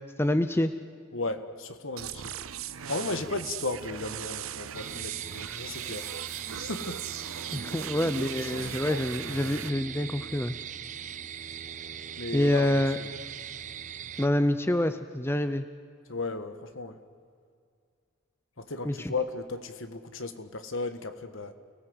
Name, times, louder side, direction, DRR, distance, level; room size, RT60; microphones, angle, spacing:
voice 1, 0.2-0.7 7.5-10.6 12.3-13.0 14.2-15.7 18.8-19.1, left 1 dB, 10° left, 10 dB, 0.6 m, -26 dB
voice 2, 1.1-2.3 2.9-6.1 6.5-7.0 8.1-9.4 12.2-13.1 16.1-17.0 18.6-21.5, left 3 dB, 65° left, 9 dB, 1.6 m, -35 dB
sound 1, 2.0-9.7, right 9 dB, 70° right, 0.7 m, -39 dB
sound 2, 4.7-14.3, right 8 dB, 35° right, 0.5 m, -40 dB
29.5 x 18.5 x 8.0 m, 2.2 s
head